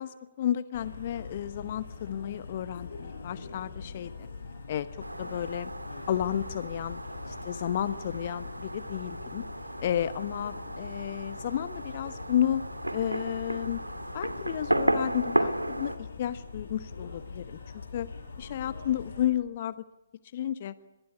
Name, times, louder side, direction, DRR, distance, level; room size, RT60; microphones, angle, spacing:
voice 1, 0.0-4.3 4.7-4.9 5.2-5.7 6.1-7.0 7.3-9.5 9.8-12.6 12.9-13.8 14.1-18.1 18.4-19.8 20.3-20.8, left 10 dB, 40° left, 15 dB, 0.9 m, -32 dB
sound 1, 0.7-19.3, left 4 dB, 60° left, 5.7 m, -43 dB
Fireworks, 5.0-16.0, right 1 dB, 85° right, 2.3 m, -34 dB
25.5 x 22.0 x 9.8 m, 1.1 s
figure-of-eight pair, 130°, 0 cm